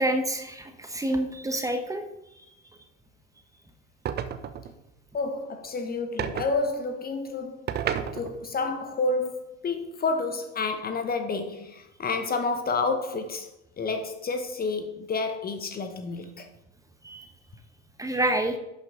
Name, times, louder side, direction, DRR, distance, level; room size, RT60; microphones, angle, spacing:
voice 1, 0.0-2.0 17.0-17.2 18.0-18.6, right 1 dB, 10° right, 1.1 m, -27 dB
sound 1, 4.1-4.8 6.2-6.5 7.7-8.5, right 8 dB, 30° right, 0.7 m, -31 dB
voice 2, 5.1-7.8 8.1-13.5 13.8-16.5, left 3 dB, 25° left, 1.0 m, -29 dB
11.0 x 6.1 x 3.7 m
figure-of-eight pair, 70°, 36 cm